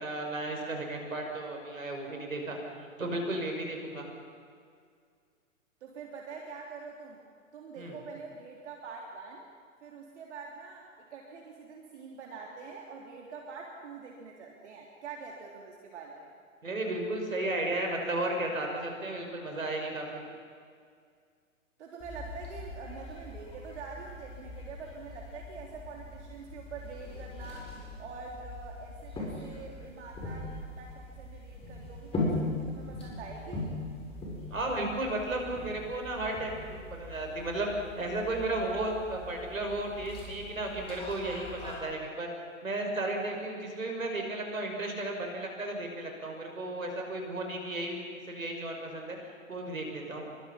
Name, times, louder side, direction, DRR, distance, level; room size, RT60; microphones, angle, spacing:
voice 1, 0.0-2.6 3.0-4.1 7.8-8.0 16.6-20.2 34.5-37.7 38.0-42.3 42.6-48.0 48.3-49.2 49.5-50.3, right 2 dB, 80° right, 2 dB, 6.5 m, -34 dB
voice 2, 5.8-7.2 7.5-9.4 9.8-16.3 21.8-33.7, right 4 dB, 55° right, -1 dB, 3.5 m, -45 dB
sound 1, 22.0-41.7, left 2 dB, 15° left, 7.0 m, -40 dB
26.5 x 24.5 x 5.8 m, 2.1 s
figure-of-eight pair, 120°, 40 cm